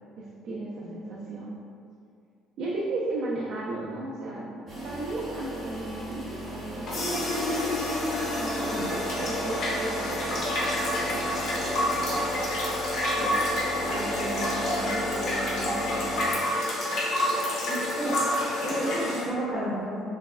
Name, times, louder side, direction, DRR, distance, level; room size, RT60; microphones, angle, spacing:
voice 1, 0.2-1.6 2.6-7.1 8.4-12.4 13.2-13.5 13.8-16.3, right 2 dB, 55° right, -6 dB, 0.4 m, -36 dB
sound 1, 4.7-16.2, equal, 30° right, 0.8 m, -35 dB
sound 2, 6.9-19.2, left 1 dB, 55° left, 0.6 m, -28 dB
voice 2, 17.7-18.2 18.6-20.0, right 1 dB, ahead, -11 dB, 0.6 m, -31 dB
3.2 x 2.0 x 2.3 m, 2.3 s
cardioid pair, 140°, 0 cm